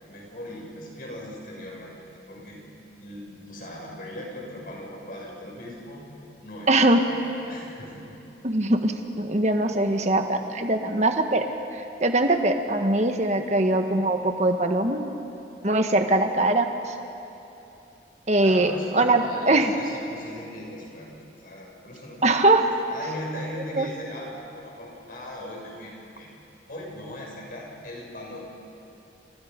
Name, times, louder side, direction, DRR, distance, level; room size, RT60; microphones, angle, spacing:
voice 1, 0.0-2.6 3.0-6.0 6.4-8.1 18.4-21.1 21.4-22.4 22.9-26.3 26.7-28.4, left 1 dB, 50° left, -2 dB, 6.6 m, -39 dB
voice 2, 6.7-7.0 8.4-11.4 11.7-15.1 15.6-16.9 18.3-19.7 22.2-22.7 23.8-23.9, right 2 dB, 40° right, 5 dB, 1.6 m, -22 dB
29.0 x 28.0 x 5.3 m, 2.9 s
head